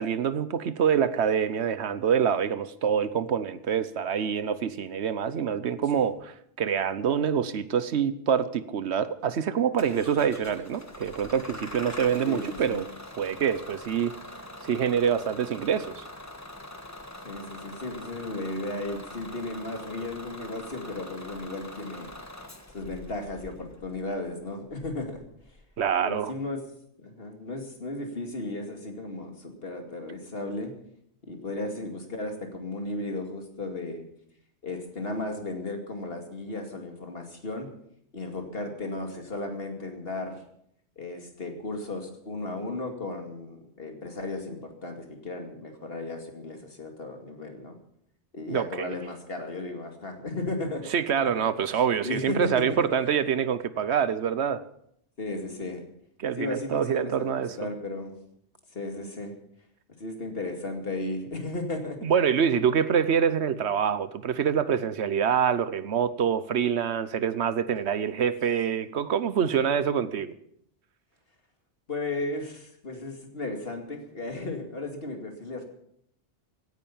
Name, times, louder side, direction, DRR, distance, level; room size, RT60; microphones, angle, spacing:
voice 1, 0.0-12.8 13.2-14.1 14.6-16.0 25.8-26.3 48.5-48.9 50.9-54.6 56.2-57.6 62.0-70.3, right 7 dB, 75° right, 1.1 m, -26 dB
Bus / Engine starting, 9.8-26.0, left 1 dB, 15° left, 1.5 m, -44 dB
voice 2, 12.2-12.8 17.2-22.1 22.7-25.2 26.0-26.6 27.0-30.7 31.2-34.0 34.6-37.7 38.1-40.4 41.0-47.8 48.3-50.8 51.2-52.9 55.2-55.9 56.4-58.2 58.7-59.4 60.0-62.0 71.9-75.6, left 2 dB, 60° left, 2.6 m, -35 dB
16.5 x 10.5 x 7.1 m
omnidirectional pair, 1.1 m